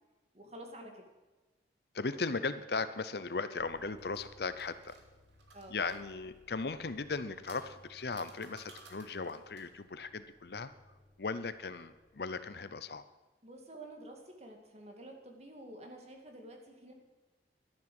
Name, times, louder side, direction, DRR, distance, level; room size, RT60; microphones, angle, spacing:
voice 1, 0.3-1.1 5.5-5.8 13.4-16.9, right 1 dB, 35° right, 3 dB, 2.2 m, -49 dB
voice 2, 1.9-5.0 5.7-10.7 11.2-13.0, left 4 dB, 60° left, 13 dB, 0.7 m, -37 dB
sound 1, 3.6-12.5, left 1 dB, 25° left, 3.8 m, -63 dB
sound 2, 3.7-6.0 7.0-9.8, right 3 dB, 90° right, 2.6 m, -58 dB
12.5 x 11.0 x 7.8 m, 1.2 s
head